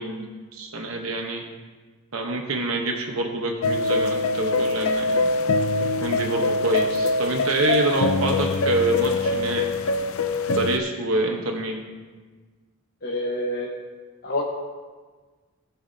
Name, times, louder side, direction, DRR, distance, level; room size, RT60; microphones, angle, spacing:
voice 1, 0.0-1.4 2.1-5.2 6.0-9.7 10.5-11.8, right 2 dB, 75° right, 2 dB, 1.0 m, -26 dB
sound 1, 3.6-10.8, left 3 dB, 75° left, 0.5 m, -23 dB
voice 2, 13.0-13.7 14.2-14.4, left 1 dB, 50° left, -4 dB, 1.3 m, -27 dB
19.0 x 7.0 x 2.8 m, 1.4 s
head